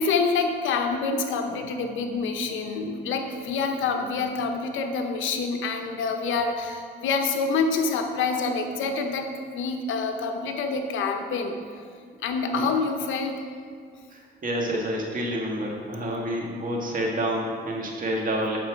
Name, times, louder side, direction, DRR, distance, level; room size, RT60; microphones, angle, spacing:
voice 1, 0.0-11.6 12.2-13.4, left 4 dB, 80° left, 5 dB, 0.9 m, -27 dB
voice 2, 14.1-18.6, right 1 dB, 45° right, -1 dB, 1.9 m, -28 dB
7.9 x 6.0 x 5.1 m, 2.1 s
cardioid pair, 90°, 20 cm